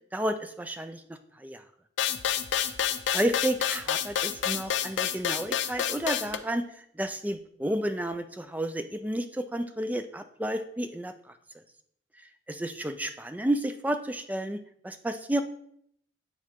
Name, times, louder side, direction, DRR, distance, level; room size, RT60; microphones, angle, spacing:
voice 1, 0.1-1.0 1.4-1.6 3.1-11.3 12.5-15.4, right 1 dB, 10° right, 9 dB, 0.3 m, -31 dB
sound 1, 2.0-6.4, left 9 dB, 85° left, 0.5 m, -28 dB
9.3 x 3.8 x 3.6 m, 0.69 s
head